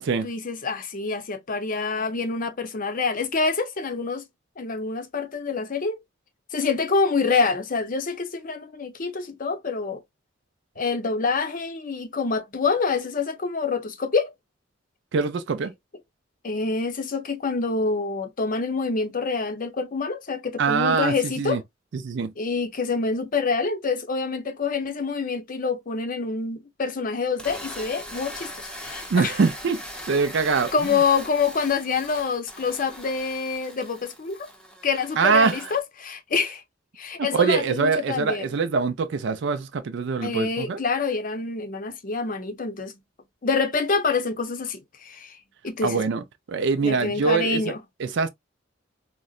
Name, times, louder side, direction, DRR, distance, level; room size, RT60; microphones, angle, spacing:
voice 1, 0.2-4.2 4.6-6.0 6.5-10.0 10.8-14.3 16.4-21.6 22.4-29.4 30.7-34.5 34.8-36.6 37.0-38.5 40.2-43.0 43.4-45.4 45.6-46.0 46.8-47.8, left 4 dB, 45° left, 0.6 m, -26 dB
voice 2, 15.1-15.7 20.6-21.6 21.9-22.3 29.1-29.8 30.1-31.0 35.2-35.6 37.3-40.8 45.8-46.2 46.5-47.6 48.0-48.3, right 5 dB, 65° right, 0.4 m, -23 dB
sound 1, 27.3-35.8, equal, 5° left, 0.6 m, -40 dB
3.8 x 2.1 x 2.3 m
head